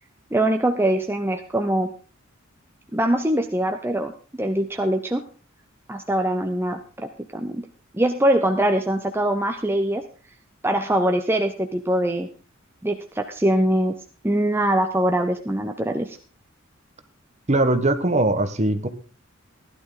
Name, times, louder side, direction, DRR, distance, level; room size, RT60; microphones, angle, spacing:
voice 1, 0.3-1.9 2.9-5.2 5.9-7.6 7.9-10.0 10.6-12.3 12.8-14.0 14.2-16.2, right 1 dB, 10° right, 4 dB, 0.8 m, -23 dB
voice 2, 17.5-18.9, right 2 dB, 35° right, 10 dB, 1.3 m, -20 dB
16.0 x 11.5 x 3.9 m, 0.37 s
head